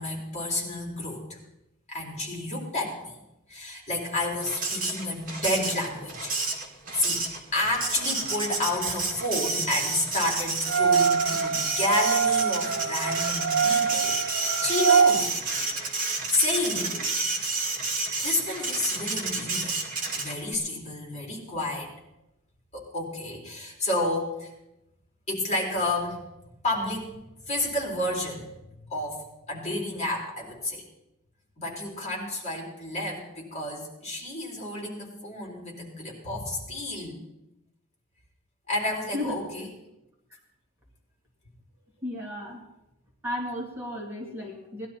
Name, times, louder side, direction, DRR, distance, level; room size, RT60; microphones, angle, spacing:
voice 1, 0.0-1.4 1.9-3.2 3.5-6.3 6.9-7.2 7.5-15.3 16.3-17.1 17.4-17.6 18.2-19.8 20.1-21.9 22.7-24.5 25.3-26.2 26.6-27.1 27.4-28.5 28.8-30.8 31.6-37.2 38.7-39.7, left 1 dB, 30° left, -1 dB, 3.7 m, -30 dB
Printer, 4.4-20.5, right 3 dB, 40° right, 2.3 m, -30 dB
sound 1, 10.6-15.1, right 6 dB, 75° right, 1.3 m, -24 dB
voice 2, 42.0-42.6 43.2-44.9, left 1 dB, 10° right, -3 dB, 2.3 m, -34 dB
18.5 x 12.0 x 4.4 m, 0.90 s
head